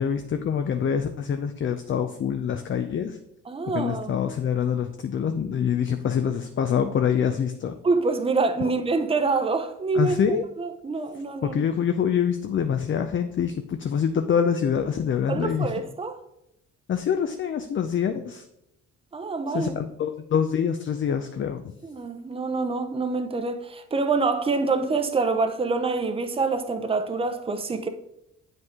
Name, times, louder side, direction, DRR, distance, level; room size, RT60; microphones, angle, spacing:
voice 1, 0.0-3.2 3.7-7.8 9.9-10.4 11.4-15.7 16.9-18.4 19.5-21.7, left 7 dB, 40° left, 0.5 m, -25 dB
voice 2, 3.5-4.1 7.8-10.2 10.6-11.6 15.3-16.2 19.1-19.7 21.8-27.9, right 4 dB, 20° right, 0.7 m, -26 dB
7.8 x 5.3 x 3.6 m
cardioid pair, 90°, 30 cm